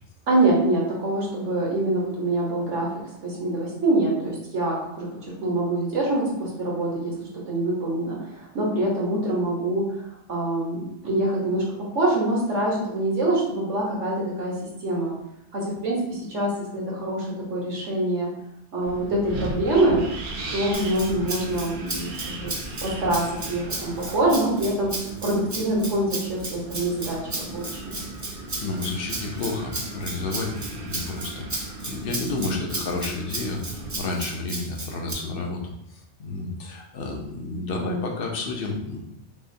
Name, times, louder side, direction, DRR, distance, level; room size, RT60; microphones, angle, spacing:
voice 1, 0.3-2.9 3.2-7.1 7.4-10.0 10.3-11.6 11.9-14.5 14.8-15.1 15.5-18.3 18.7-20.1 20.5-22.5 22.8-28.0, right 1 dB, 85° right, -4 dB, 1.5 m, -25 dB
Wind, 18.8-34.0, right 2 dB, 55° right, 0.7 m, -37 dB
Rattle (instrument), 20.7-35.1, right 2 dB, 25° right, 0.3 m, -34 dB
voice 2, 28.6-35.7 36.2-39.0, left 3 dB, 55° left, 1 dB, 0.8 m, -31 dB
5.6 x 2.1 x 2.6 m, 0.78 s
omnidirectional pair, 1.2 m